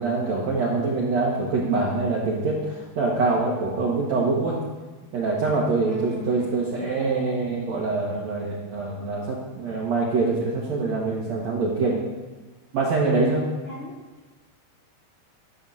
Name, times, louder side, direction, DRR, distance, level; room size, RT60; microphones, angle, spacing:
voice 1, 0.0-4.6 5.1-12.0 12.7-13.5, right 3 dB, 65° right, -4 dB, 1.8 m, -24 dB
voice 2, 5.9-6.5 13.6-13.9, equal, 50° left, -5 dB, 1.8 m, -38 dB
12.5 x 4.6 x 7.0 m, 1.3 s
omnidirectional pair, 4.9 m